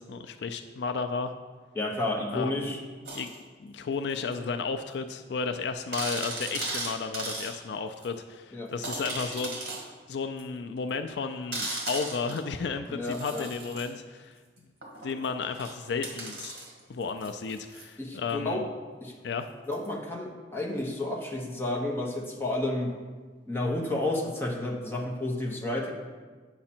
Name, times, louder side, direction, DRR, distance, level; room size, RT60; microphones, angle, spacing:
voice 1, 0.0-1.3 2.3-2.7 3.1-3.3 3.6-9.6 10.1-14.4 15.0-16.5 16.9-18.7 19.2-19.5, left 5 dB, 70° left, 8 dB, 0.4 m, -33 dB
voice 2, 1.7-2.8 8.5-8.7 12.9-13.5 18.0-18.6 19.0-19.1 19.7-22.9 23.5-25.9, left 1 dB, 15° left, -1 dB, 1.0 m, -31 dB
sound 1, 3.1-3.4 4.3-4.4 4.9-5.0 5.2-5.3 5.9-7.5 8.0-8.1 8.8-9.8 10.4-10.5 11.5-12.5 13.0-13.9 14.8-17.9 19.7-19.9, right 2 dB, 60° right, 1.7 m, -37 dB
8.5 x 5.8 x 4.4 m, 1.4 s
head